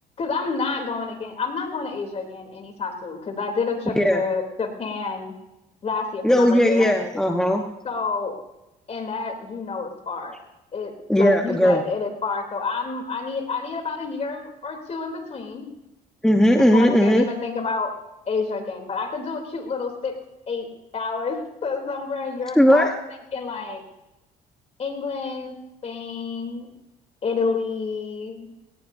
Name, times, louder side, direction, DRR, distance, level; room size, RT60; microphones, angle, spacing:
voice 1, 0.2-5.3 5.8-6.9 7.8-8.3 8.9-10.4 10.7-15.7 16.5-17.9 18.3-20.1 20.5-20.7 20.9-23.0 23.3-23.8 24.8-25.5 25.8-26.7 27.2-28.5, left 4 dB, 40° left, 4 dB, 3.3 m, -29 dB
voice 2, 6.2-7.6 11.1-11.8 16.2-17.2 22.6-22.9, equal, 5° left, 3 dB, 1.2 m, -17 dB
19.5 x 18.0 x 2.8 m, 0.95 s
cardioid pair, 110°, 17 cm